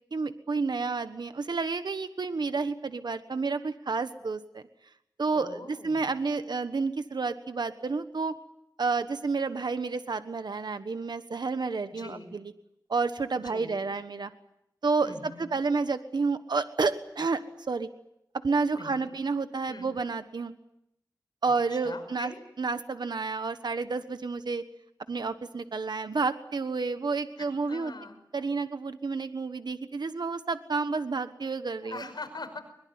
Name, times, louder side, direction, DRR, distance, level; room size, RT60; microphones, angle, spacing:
voice 1, 0.1-4.6 5.2-8.3 8.8-12.4 12.9-14.3 14.8-17.4 17.7-17.9 18.4-20.5 21.4-22.3 22.6-24.6 25.1-27.9 28.3-32.0, right 4 dB, 80° right, 10 dB, 1.3 m, -30 dB
voice 2, 5.3-6.1 11.9-12.3 13.4-13.9 15.0-15.5 18.7-19.1 19.7-19.9 21.7-22.4 27.4-28.2 31.8-32.6, left 3 dB, 80° left, 7 dB, 5.5 m, -43 dB
22.5 x 22.0 x 9.5 m, 0.79 s
wide cardioid pair, 50°, 7 cm